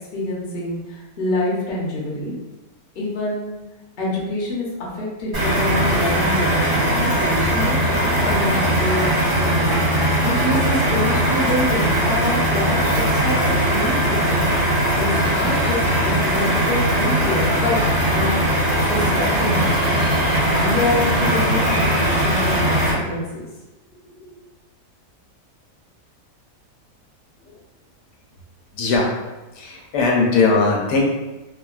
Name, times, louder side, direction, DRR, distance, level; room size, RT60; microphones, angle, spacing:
voice 1, 0.1-2.3 2.9-3.5 4.0-14.5 15.0-17.8 18.1-19.8 20.4-23.4, left 1 dB, 45° left, -5 dB, 0.8 m, -26 dB
sound 1, 5.3-22.9, right 1 dB, 50° right, 1.6 m, -19 dB
voice 2, 28.7-29.2 29.5-31.0, left 3 dB, 80° left, -1 dB, 1.2 m, -19 dB
3.4 x 2.2 x 2.3 m, 1.1 s
omnidirectional pair, 1.8 m